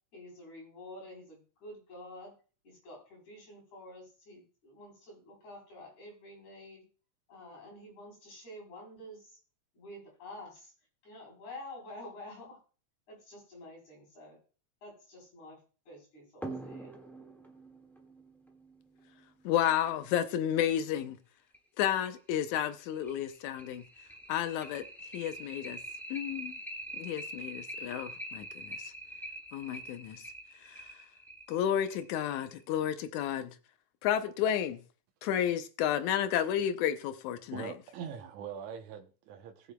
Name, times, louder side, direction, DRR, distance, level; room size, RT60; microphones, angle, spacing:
voice 1, 0.1-2.4 2.6-6.9 7.3-9.4 9.7-10.7 11.0-12.6 13.1-14.4 14.8-16.9, left 1 dB, 75° left, 5.5 m, -49 dB
sound 1, 16.4-19.6 21.0-21.1 21.5-21.6 22.0-22.1 22.6-32.6, right 1 dB, ahead, 0.8 m, -44 dB
voice 2, 19.5-21.2 21.8-23.8 24.3-24.9 25.1-25.8 26.1-26.5 26.9-28.8 29.5-30.2 30.6-30.9 31.5-33.6 34.0-34.8 35.2-37.7, left 10 dB, 90° left, 2.2 m, -31 dB
voice 3, 37.5-39.7, right 8 dB, 80° right, 2.3 m, -42 dB
20.0 x 7.0 x 2.2 m
omnidirectional pair, 3.3 m